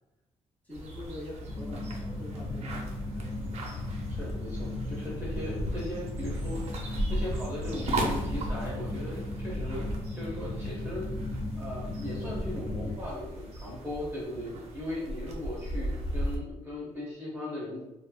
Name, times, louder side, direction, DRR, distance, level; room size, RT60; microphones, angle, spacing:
voice 1, 0.6-3.7, left 1 dB, 15° left, -7 dB, 1.1 m, -45 dB
sound 1, 0.7-16.4, right 1 dB, 60° right, 0.6 m, -37 dB
sound 2, 1.5-12.9, left 2 dB, 40° left, 0.5 m, -36 dB
voice 2, 4.1-9.9 10.1-17.8, left 1 dB, 20° right, -7 dB, 0.7 m, -38 dB
2.9 x 2.3 x 2.2 m, 0.98 s
cardioid pair, 135°, 12 cm